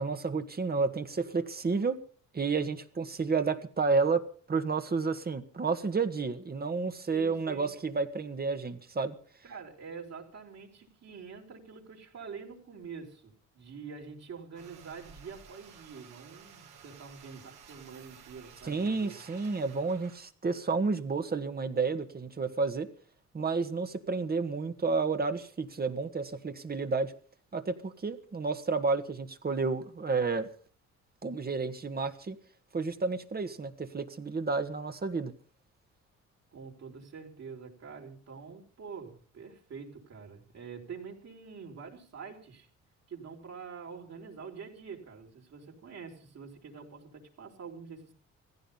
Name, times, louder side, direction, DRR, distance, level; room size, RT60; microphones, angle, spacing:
voice 1, 0.0-2.0 2.3-9.2 18.6-22.9 23.3-27.1 27.5-30.5 31.2-32.4 32.7-35.3, right 4 dB, 30° right, 8 dB, 1.8 m, -31 dB
voice 2, 7.1-7.7 9.4-19.2 36.5-42.7 43.1-48.1, right 5 dB, 60° right, 1 dB, 4.8 m, -46 dB
sound 1, 14.5-20.2, right 7 dB, 80° right, 4.1 m, -53 dB
17.0 x 15.5 x 5.5 m, 0.43 s
cardioid pair, 90°, 30 cm